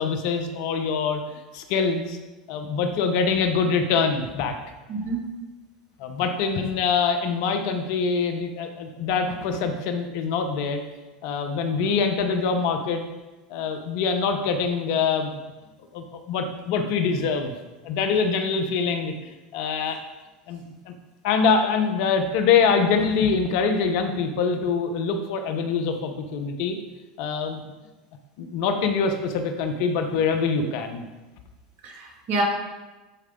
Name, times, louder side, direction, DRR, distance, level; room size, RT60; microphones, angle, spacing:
voice 1, 0.0-2.2 2.5-4.6 6.0-10.8 11.2-13.0 13.5-15.4 15.9-17.5 17.8-20.0 20.5-20.9 21.2-26.8 27.2-27.6 28.4-31.0, left 5 dB, 60° left, 6 dB, 0.9 m, -24 dB
voice 2, 4.9-5.3 31.8-32.4, right 3 dB, 50° right, 0 dB, 2.1 m, -28 dB
11.0 x 4.7 x 3.8 m, 1.1 s
hypercardioid pair, 85°, 4 cm